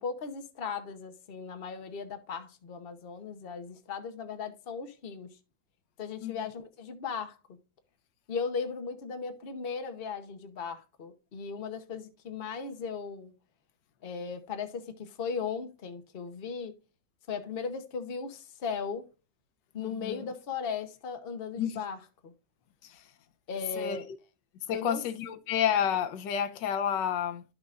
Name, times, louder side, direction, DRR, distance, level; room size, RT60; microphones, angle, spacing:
voice 1, 0.0-5.3 6.0-7.4 8.3-13.3 14.0-16.7 17.3-19.1 19.7-22.3 23.5-24.1 24.7-25.0, left 5 dB, 40° left, 0.9 m, -37 dB
voice 2, 19.8-20.2 21.6-21.8 22.8-23.0 23.8-24.0 24.7-27.4, left 9 dB, 85° left, 1.4 m, -30 dB
11.0 x 6.5 x 2.4 m
omnidirectional pair, 1.9 m